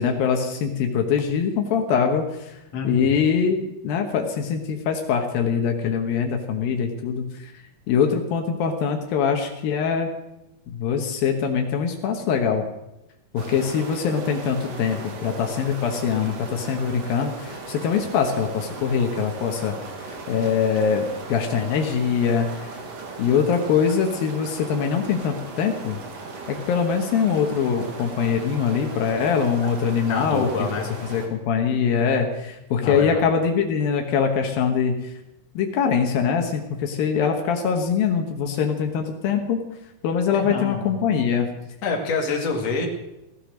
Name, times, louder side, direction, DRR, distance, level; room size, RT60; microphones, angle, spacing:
voice 1, 0.0-2.6 2.8-7.5 7.9-10.1 10.7-12.6 13.3-22.7 23.2-26.0 26.5-30.5 31.1-35.1 35.5-39.6 40.0-41.5, left 6 dB, 80° left, 3 dB, 3.0 m, -23 dB
voice 2, 2.7-3.3 30.1-30.9 32.8-33.3 40.3-40.9 41.8-42.9, left 4 dB, 50° left, 1 dB, 3.2 m, -27 dB
sound 1, 13.4-31.3, right 3 dB, 50° right, 3.0 m, -37 dB
16.5 x 14.0 x 6.3 m, 0.94 s
omnidirectional pair, 4.2 m